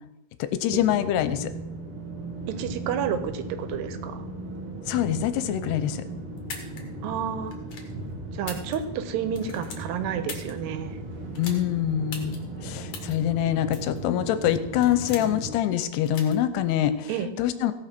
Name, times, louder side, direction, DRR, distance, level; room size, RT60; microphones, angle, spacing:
voice 1, 0.4-1.5 4.9-6.0 11.4-17.1 17.4-17.7, left 11 dB, 80° left, 12 dB, 2.8 m, -25 dB
sound 1, 0.7-15.5, right 2 dB, 50° right, 1.6 m, -37 dB
voice 2, 2.5-4.2 7.0-7.5 8.3-11.0 17.1-17.3, right 8 dB, 85° right, 10 dB, 3.0 m, -30 dB
sound 2, 6.4-6.8 7.5-7.9 8.3-9.1 9.3-10.5 11.3-11.6 12.1-12.4 12.9-13.1 13.7-14.0 14.5-15.4 16.1-16.3, left 5 dB, 50° left, 2.6 m, -39 dB
17.0 x 6.1 x 6.0 m, 0.98 s
omnidirectional pair, 4.7 m